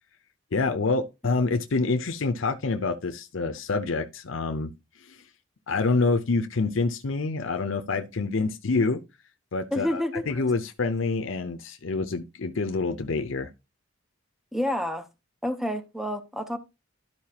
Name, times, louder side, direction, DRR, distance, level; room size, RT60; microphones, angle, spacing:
voice 1, 0.5-4.7 5.0-5.2 5.7-9.0 9.5-13.5, left 3 dB, 70° left, 0.7 m, -27 dB
voice 2, 9.7-10.4 14.5-15.1 15.4-16.6, left 1 dB, ahead, 0.8 m, -29 dB
12.5 x 4.7 x 2.9 m
head